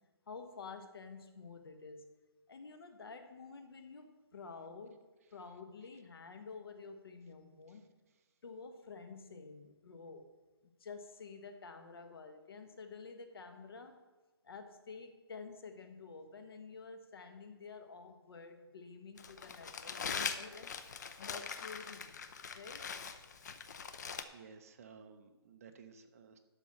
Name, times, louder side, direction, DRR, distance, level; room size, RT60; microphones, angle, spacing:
voice 1, 0.3-2.0 2.5-5.0 5.3-7.8 8.4-10.2 10.8-14.0 14.4-20.8 21.2-22.2 22.5-22.9, left 4 dB, 65° left, 6 dB, 1.4 m, -50 dB
Crumpling crinkling, 19.2-24.2, left 6 dB, 45° left, 0.7 m, -42 dB
voice 2, 24.3-26.4, right 5 dB, 35° right, 7 dB, 0.7 m, -56 dB
12.0 x 4.1 x 7.4 m, 1.2 s
hypercardioid pair, 170°, 13 cm